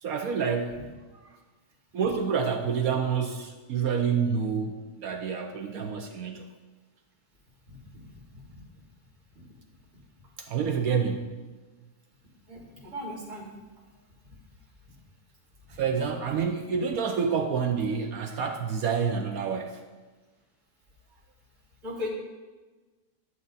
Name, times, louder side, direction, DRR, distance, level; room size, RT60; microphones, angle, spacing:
voice 1, 0.0-0.8 1.1-1.3 1.9-6.5 10.4-11.5 15.7-19.9, right 6 dB, 65° right, 5 dB, 1.0 m, -28 dB
voice 2, 7.7-8.1 8.5-8.6 12.5-13.5 14.2-14.4 21.8-22.1, left 1 dB, 45° right, -4 dB, 3.1 m, -38 dB
11.0 x 7.4 x 4.0 m, 1.3 s
omnidirectional pair, 1.8 m